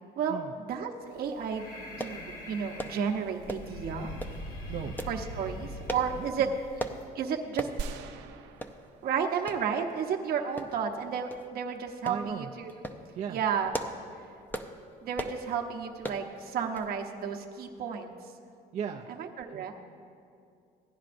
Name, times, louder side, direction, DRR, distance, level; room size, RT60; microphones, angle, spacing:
voice 1, 0.2-4.2 5.1-6.5 7.1-7.7 9.0-12.7 13.3-13.7 15.0-18.1 19.2-19.7, right 7 dB, 65° right, 2 dB, 1.0 m, -32 dB
Breathing, 1.1-7.1, equal, 65° left, 2.4 m, -43 dB
sound 1, 2.0-2.2 2.8-3.0 3.5-3.7 4.2-4.4 5.0-5.2 5.9-6.1 6.8-7.0 7.6-7.8 8.2-8.3 8.6-8.8 9.5-9.6 10.6-10.9 11.3-11.4 12.1-12.2 12.7-13.0 13.5-14.0 14.5-14.7 15.1-15.4 16.0-16.2 16.8-16.9 17.2-17.3, equal, 10° left, 0.6 m, -37 dB
voice 2, 6.2-6.6 12.0-12.5 13.2-13.4 18.7-19.1 19.5-19.7, right 8 dB, 45° right, 1 dB, 0.5 m, -37 dB
sound 2, 7.8-9.7 10.0-10.1, right 6 dB, 90° right, 0.7 m, -41 dB
17.0 x 10.5 x 2.6 m, 2.4 s
cardioid pair, 110°, 17 cm